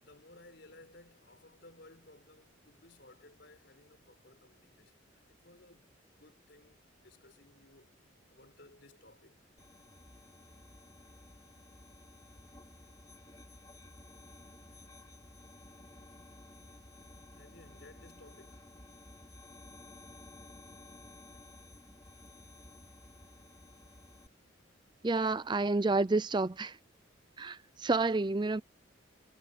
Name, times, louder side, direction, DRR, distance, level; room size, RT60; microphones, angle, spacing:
voice 1, 0.0-7.9 8.3-9.5 17.3-18.7 22.8-22.9, left 2 dB, 60° left, 4.5 m, -59 dB
sound 1, 9.6-24.3, left 2 dB, 20° left, 3.4 m, -54 dB
voice 2, 25.0-26.8 27.4-28.6, right 3 dB, 25° right, 0.5 m, -29 dB
head